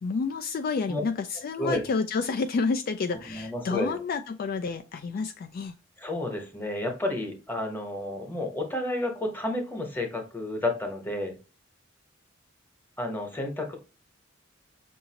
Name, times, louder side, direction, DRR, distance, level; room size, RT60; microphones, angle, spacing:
voice 1, 0.0-5.8, left 4 dB, 50° left, 6 dB, 0.3 m, -29 dB
voice 2, 3.3-3.9 6.0-11.3 13.0-13.8, left 1 dB, 10° left, 3 dB, 1.0 m, -31 dB
5.6 x 2.7 x 2.8 m, 0.33 s
head